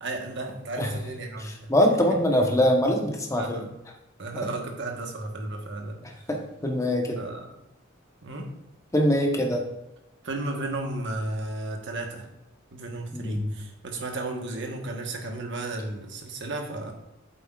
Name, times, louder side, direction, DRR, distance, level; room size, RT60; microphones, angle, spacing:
voice 1, 0.0-2.0 3.4-3.7 4.2-6.0 7.2-7.4 8.2-8.5 10.2-12.3 12.7-16.9, right 2 dB, 65° right, 2 dB, 1.2 m, -34 dB
voice 2, 1.4-3.7 6.3-7.2 8.9-9.6 13.1-13.4, equal, 15° left, 1 dB, 1.0 m, -23 dB
8.3 x 7.7 x 2.4 m, 0.90 s
head